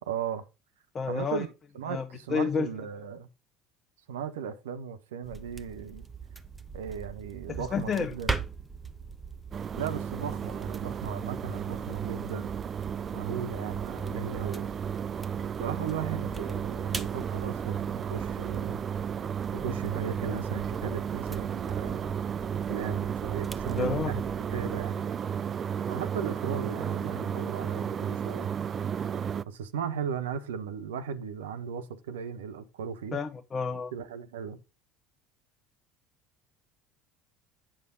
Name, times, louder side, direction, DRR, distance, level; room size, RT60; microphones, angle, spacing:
voice 1, 0.0-0.4 1.1-3.3 4.1-6.0 6.7-8.4 9.8-12.5 13.1-14.7 15.6-18.8 19.5-22.2 22.5-24.2 24.5-25.0 25.9-28.5 29.5-33.2 33.9-34.6, right 7 dB, 75° right, 0.9 m, -36 dB
voice 2, 0.9-1.5 1.9-2.7 7.5-8.2 23.7-24.1 33.1-33.9, left 5 dB, 30° left, 0.9 m, -30 dB
sound 1, 5.2-25.0, right 4 dB, 15° right, 1.1 m, -42 dB
sound 2, 9.5-29.4, right 8 dB, 35° right, 0.4 m, -33 dB
8.9 x 6.9 x 3.8 m
figure-of-eight pair, 65°, 0 cm